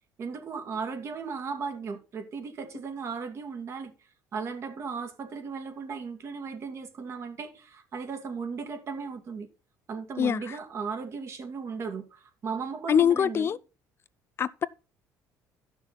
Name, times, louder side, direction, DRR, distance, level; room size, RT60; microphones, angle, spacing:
voice 1, 0.2-3.9 4.3-9.5 9.9-13.5, right 5 dB, 45° right, 2.3 m, -36 dB
voice 2, 10.2-10.6 12.9-13.6 14.4-14.7, left 8 dB, 40° left, 0.4 m, -24 dB
13.0 x 6.2 x 4.1 m
cardioid pair, 115°, 7 cm